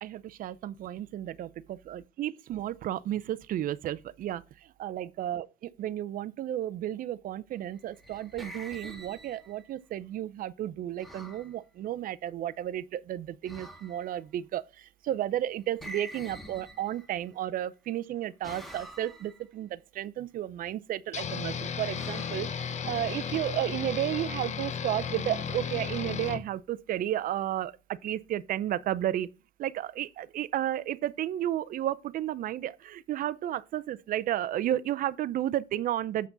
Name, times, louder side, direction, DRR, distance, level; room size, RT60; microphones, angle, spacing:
voice 1, 0.0-29.3 29.6-36.3, right 12 dB, 55° right, 0.5 m, -33 dB
sound 1, 7.7-9.7 11.0-11.5 13.5-14.2 15.8-17.3 18.4-19.4 21.9-23.1, right 1 dB, ahead, 1.7 m, -46 dB
sound 2, 21.1-26.4, left 7 dB, 45° left, 0.9 m, -34 dB
7.4 x 5.8 x 3.9 m
cardioid pair, 110°, 17 cm